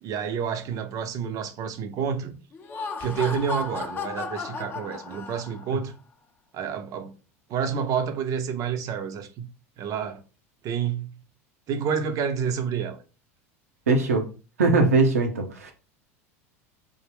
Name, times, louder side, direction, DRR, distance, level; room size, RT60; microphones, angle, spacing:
voice 1, 0.0-2.4 3.0-5.9 6.5-7.1 7.5-9.5 9.8-10.2 10.6-11.1 11.7-13.0, right 7 dB, 45° right, 0.5 m, -29 dB
Laughter, 2.5-5.8, left 5 dB, 25° left, 0.5 m, -34 dB
voice 2, 13.9-14.3 14.6-15.7, right 3 dB, 85° right, 0.7 m, -21 dB
3.4 x 2.1 x 3.4 m
hypercardioid pair, 85°, 8 cm